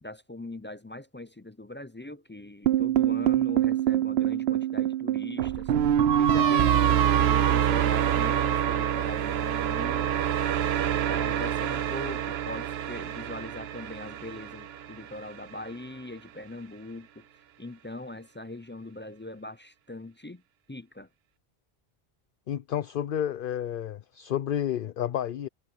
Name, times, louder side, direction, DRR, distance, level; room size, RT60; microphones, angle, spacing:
voice 1, 0.0-5.7 6.2-10.1 11.1-17.3 17.6-20.4 20.7-21.1, left 2 dB, 20° left, 0.3 m, -41 dB
sound 1, 2.7-14.9, right 10 dB, 80° right, 0.9 m, -25 dB
voice 2, 22.5-25.5, left 10 dB, 60° left, 0.8 m, -30 dB
omnidirectional pair, 1.0 m